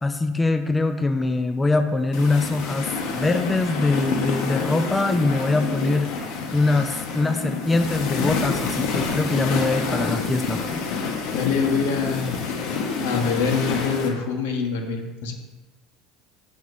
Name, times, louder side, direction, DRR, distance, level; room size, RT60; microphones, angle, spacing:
voice 1, 0.0-10.8, left 2 dB, 15° left, 8 dB, 0.5 m, -23 dB
sound 1, 2.1-14.1, left 4 dB, 65° left, 1.4 m, -28 dB
voice 2, 11.3-12.3 13.0-15.3, left 5 dB, 85° left, 2 dB, 1.4 m, -24 dB
9.3 x 6.9 x 2.7 m, 1.1 s
supercardioid pair, 110°, 0 cm